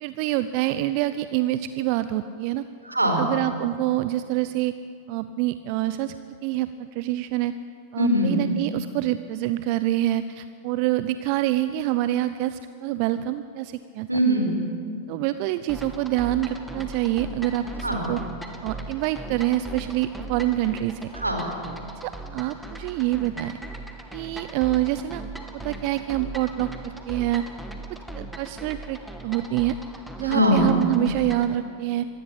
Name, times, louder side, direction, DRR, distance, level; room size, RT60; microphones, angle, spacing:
voice 1, 0.0-2.7 3.2-4.7 5.1-7.5 7.9-14.1 15.1-18.2 18.6-21.1 22.0-23.6 24.1-25.2 25.5-27.4 28.1-29.8 30.2-32.1, right 14 dB, 45° right, 12 dB, 0.7 m, -26 dB
voice 2, 2.8-3.3 8.0-8.4 14.1-14.6 17.8-18.1 21.1-21.5 30.2-30.7, equal, 85° right, 3 dB, 4.5 m, -22 dB
sound 1, 15.7-31.5, right 2 dB, ahead, 2.4 m, -39 dB
25.0 x 20.0 x 8.7 m, 2.4 s
figure-of-eight pair, 90°, 0 cm